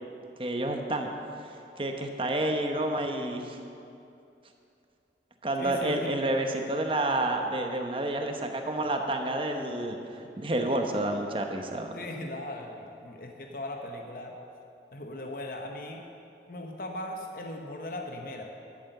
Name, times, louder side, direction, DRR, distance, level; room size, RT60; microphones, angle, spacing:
voice 1, 0.4-1.1 1.8-3.6 5.4-10.0 10.4-11.9, right 1 dB, 30° right, 4 dB, 0.9 m, -29 dB
voice 2, 5.6-6.2 11.9-14.3 14.9-16.0 16.5-18.4, left 1 dB, 50° left, 2 dB, 0.9 m, -38 dB
12.0 x 8.4 x 6.7 m, 2.7 s
head